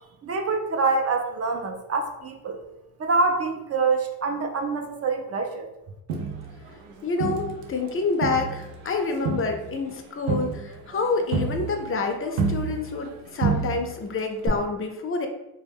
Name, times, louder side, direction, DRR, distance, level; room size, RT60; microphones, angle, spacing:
voice 1, 0.2-2.6 3.0-5.7, right 3 dB, 35° right, 3 dB, 0.4 m, -25 dB
Crowd, 6.1-7.9 8.2-13.1 13.4-14.1 14.5-14.6, right 4 dB, 80° right, 0.6 m, -29 dB
voice 2, 7.0-15.3, left 3 dB, 30° left, 4 dB, 0.5 m, -28 dB
2.2 x 2.1 x 3.4 m, 0.93 s
supercardioid pair, 70°, 48 cm